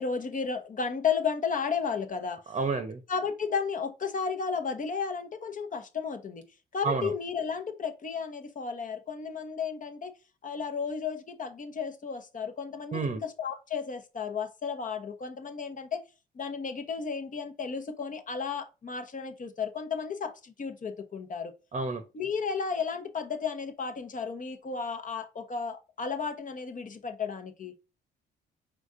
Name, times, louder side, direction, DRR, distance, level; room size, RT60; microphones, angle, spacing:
voice 1, 0.0-2.4 3.1-6.5 6.7-10.1 10.4-16.0 16.4-21.5 22.1-27.7, left 6 dB, 40° left, 1.0 m, -33 dB
voice 2, 2.5-3.0 6.8-7.1 12.9-13.2 21.7-22.0, right 4 dB, 35° right, 0.8 m, -30 dB
5.0 x 3.7 x 2.6 m
cardioid pair, 90°, 20 cm